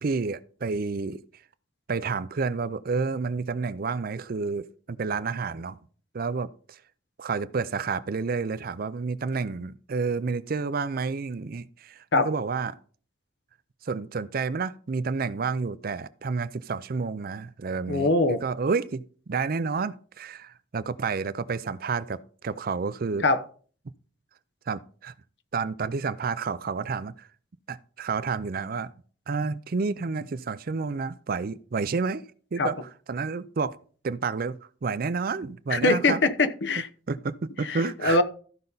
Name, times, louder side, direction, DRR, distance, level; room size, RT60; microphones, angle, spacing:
voice 1, 0.0-1.2 1.9-5.8 6.1-6.8 7.2-12.8 13.9-23.2 24.7-25.1 25.5-27.3 27.7-28.9 29.3-32.2 32.5-32.8 33.1-33.8 34.0-36.2 37.1-38.2, right 4 dB, 50° right, 0.5 m, -30 dB
voice 2, 17.9-18.4 23.2-23.4 32.6-32.7 35.7-36.9 37.6-38.2, left 2 dB, 65° left, 0.9 m, -22 dB
13.5 x 5.4 x 3.9 m
head